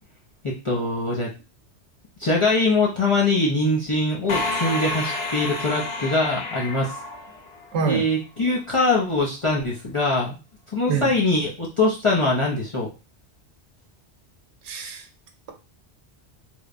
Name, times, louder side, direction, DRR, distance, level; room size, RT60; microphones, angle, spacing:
voice 1, 0.4-1.3 2.2-6.9 7.8-10.4 10.7-12.9, left 2 dB, 40° left, -5 dB, 0.4 m, -22 dB
sound 1, 4.3-8.0, left 2 dB, 70° left, 0.8 m, -29 dB
voice 2, 7.7-8.0 10.9-11.1 14.6-15.1, right 5 dB, 85° right, 4 dB, 0.9 m, -25 dB
3.1 x 2.1 x 2.4 m, 0.31 s
omnidirectional pair, 1.1 m